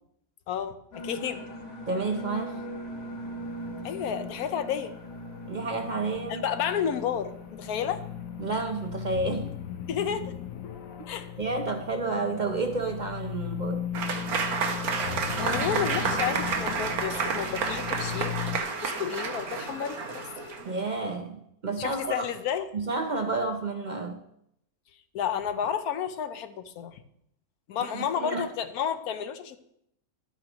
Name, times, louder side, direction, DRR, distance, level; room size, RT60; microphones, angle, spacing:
voice 1, 0.5-1.5 3.8-4.9 6.3-8.0 9.9-10.4 11.1-11.3 15.4-20.3 21.8-22.7 25.1-27.0 27.7-29.6, left 8 dB, 85° left, 1.2 m, -31 dB
sound 1, 0.9-10.6 10.9-11.0 16.9-20.6, right 1 dB, 45° left, 1.8 m, -43 dB
voice 2, 1.9-2.6 5.4-6.4 8.4-9.5 11.4-13.8 20.6-22.2 22.7-24.2 27.8-28.5, right 3 dB, 50° right, 0.5 m, -30 dB
sound 2, 2.9-18.6, left 9 dB, 65° left, 1.1 m, -38 dB
Applause / Crowd, 13.9-20.8, right 5 dB, 80° right, 1.5 m, -30 dB
11.5 x 8.5 x 3.0 m
omnidirectional pair, 1.6 m